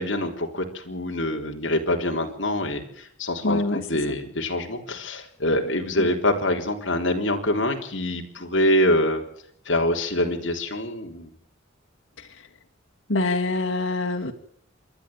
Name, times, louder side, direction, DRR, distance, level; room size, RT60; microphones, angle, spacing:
voice 1, 0.0-9.2 9.7-11.3, left 1 dB, 60° left, 2 dB, 3.6 m, -25 dB
voice 2, 3.4-3.8 6.0-6.1 13.1-14.3, left 2 dB, 85° left, 0 dB, 2.2 m, -24 dB
26.5 x 12.0 x 9.0 m, 0.65 s
head